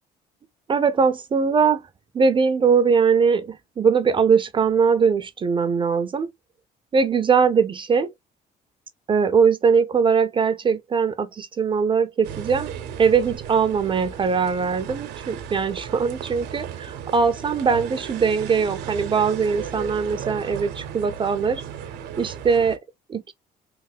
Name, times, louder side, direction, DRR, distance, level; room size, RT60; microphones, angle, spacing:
voice 1, 0.7-1.8 2.1-6.3 6.9-8.1 9.1-12.7 13.0-21.6 22.2-22.8 23.1-23.3, right 5 dB, 30° right, 0.4 m, -21 dB
sound 1, 12.2-22.8, right 9 dB, 85° right, 0.7 m, -35 dB
3.2 x 2.1 x 3.4 m
cardioid pair, 110°, 17 cm